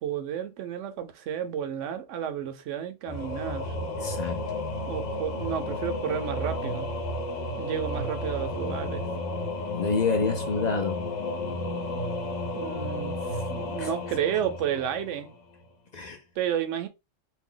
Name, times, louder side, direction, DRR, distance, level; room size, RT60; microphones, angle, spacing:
voice 1, 0.0-3.8 4.9-6.9 7.6-9.0 12.5-15.3 16.4-16.9, right 9 dB, 80° right, 0.9 m, -32 dB
Singing / Musical instrument, 3.1-15.6, left 1 dB, 85° left, 1.1 m, -32 dB
voice 2, 4.0-4.4 9.7-11.0 13.8-13.9 15.9-16.2, left 4 dB, 55° left, 0.4 m, -27 dB
2.7 x 2.2 x 3.7 m
omnidirectional pair, 1.3 m